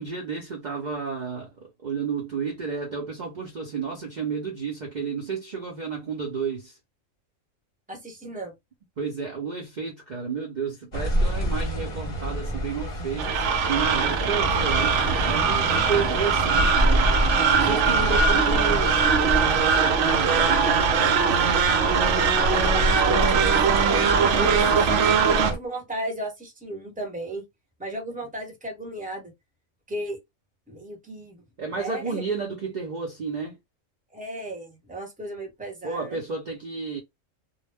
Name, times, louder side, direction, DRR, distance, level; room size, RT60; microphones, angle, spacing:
voice 1, 0.0-6.8 9.0-13.4 13.7-17.0 17.5-21.2 31.6-33.6 35.8-37.0, right 5 dB, 45° right, 0.7 m, -32 dB
voice 2, 7.9-8.5 22.9-24.8 25.3-27.4 27.8-29.3 29.9-30.2 30.7-31.5 31.7-32.2 34.1-36.2, right 1 dB, 5° right, 0.9 m, -34 dB
sound 1, 10.9-25.6, right 1 dB, 30° left, 0.8 m, -27 dB
sound 2, 13.2-25.5, right 6 dB, 70° right, 0.9 m, -21 dB
2.3 x 2.1 x 3.3 m
omnidirectional pair, 1.3 m